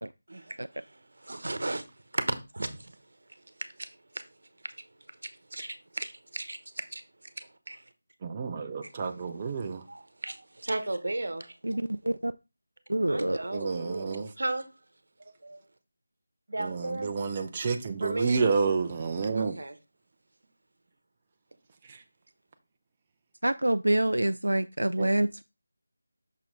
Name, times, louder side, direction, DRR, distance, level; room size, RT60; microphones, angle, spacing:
voice 1, 0.3-3.0 3.3-4.3 4.6-7.8 8.8-9.4 9.9-11.6 13.1-14.7 15.2-15.6 16.5-17.3 18.0-18.4 19.3-19.8, right 2 dB, 65° right, 1.0 m, -36 dB
voice 2, 8.2-9.8 13.5-14.3 16.6-19.6 21.9-22.0 25.0-25.1, right 5 dB, 25° right, 0.5 m, -30 dB
voice 3, 11.6-12.3 12.9-13.4 23.4-25.4, right 1 dB, 80° right, 0.3 m, -26 dB
6.1 x 4.3 x 3.8 m
figure-of-eight pair, 165°, 0 cm